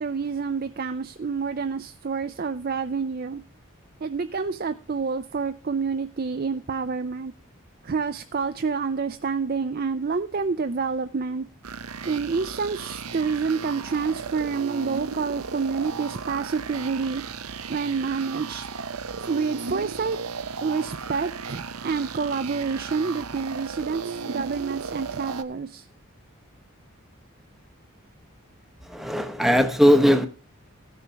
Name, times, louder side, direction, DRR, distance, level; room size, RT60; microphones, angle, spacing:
voice 1, 0.0-3.4 4.0-7.3 7.8-11.4 12.1-17.2 17.7-18.7 19.3-20.2 20.6-25.8, right 5 dB, 40° right, 0.4 m, -28 dB
sound 1, 11.6-25.4, right 5 dB, 85° right, 0.7 m, -35 dB
voice 2, 28.8-30.3, equal, ahead, 0.7 m, -19 dB
16.0 x 6.9 x 3.4 m
head